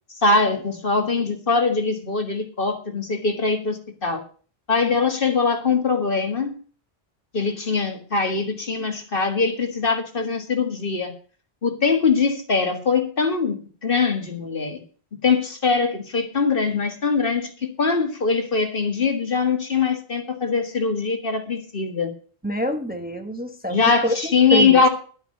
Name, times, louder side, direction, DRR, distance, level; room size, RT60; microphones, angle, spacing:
voice 1, 0.1-4.2 4.7-6.6 7.3-11.1 11.6-13.6 13.8-14.8 15.2-22.1 23.7-24.9, left 4 dB, 55° left, 2.0 m, -22 dB
voice 2, 22.4-23.8 24.0-24.8, equal, 10° right, 1.2 m, -26 dB
11.5 x 7.9 x 6.5 m
omnidirectional pair, 1.1 m